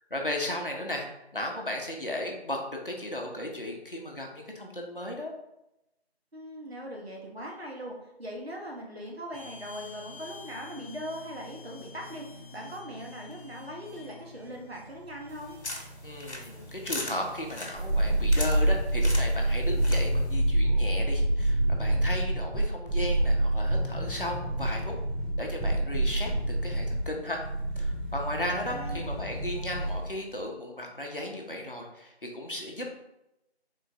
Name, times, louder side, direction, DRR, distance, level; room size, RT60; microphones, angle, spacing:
voice 1, 0.1-1.1 1.3-5.3 16.0-24.9 25.4-27.4 27.8-32.9, left 1 dB, 55° left, 1 dB, 0.6 m, -35 dB
voice 2, 6.3-15.6 28.5-29.1, equal, 70° right, -1 dB, 1.0 m, -40 dB
sound 1, 9.3-17.8, left 2 dB, 55° right, 0.6 m, -48 dB
sound 2, 15.3-20.3, left 2 dB, 90° left, 0.8 m, -40 dB
sound 3, 17.7-30.1 30.4-30.5, right 1 dB, ahead, 0.6 m, -27 dB
3.7 x 3.1 x 2.6 m, 0.88 s
figure-of-eight pair, 175°, 32 cm